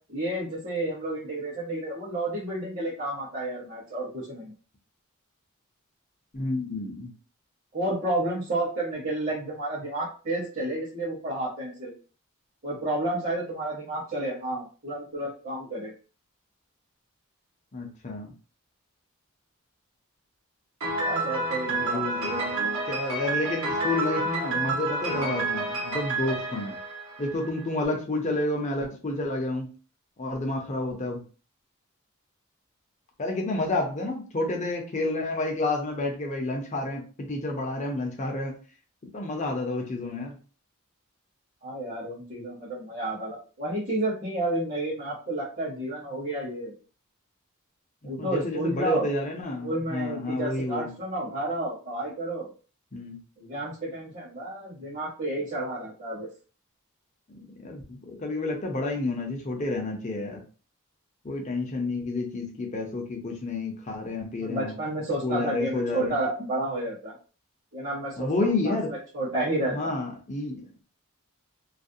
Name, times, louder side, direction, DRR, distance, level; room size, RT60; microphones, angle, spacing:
voice 1, 0.1-4.5 7.7-11.9 12.6-15.9 21.0-22.8 41.6-46.7 48.0-49.1 49.6-52.5 53.4-56.3 64.4-67.1 67.7-68.3 68.6-69.9, right 1 dB, 40° right, -9 dB, 0.9 m, -31 dB
voice 2, 6.3-7.1 17.7-18.3 21.7-22.6 22.9-26.8 27.2-29.7 30.2-31.2 33.2-38.5 39.1-40.4 48.0-50.9 52.9-53.2 57.3-60.4 61.2-64.7 65.2-66.2 68.2-68.9 69.7-70.8, left 2 dB, 35° left, 2 dB, 0.5 m, -30 dB
Piano, 20.8-27.6, right 2 dB, 75° right, 1.0 m, -29 dB
2.4 x 2.1 x 2.6 m, 0.37 s
head